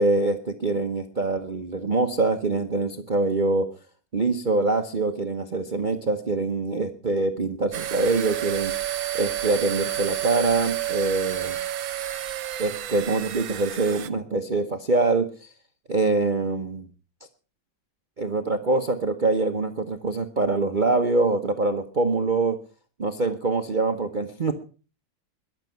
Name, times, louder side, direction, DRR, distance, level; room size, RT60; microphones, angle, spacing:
voice 1, 0.0-3.7 4.1-8.7 9.1-11.6 12.6-15.5 15.9-16.9 18.2-22.6 23.0-24.5, right 3 dB, 35° right, 7 dB, 0.8 m, -24 dB
sound 1, 7.7-14.1, right 12 dB, 75° right, 1.6 m, -30 dB
21.5 x 7.5 x 5.8 m, 0.38 s
omnidirectional pair, 2.2 m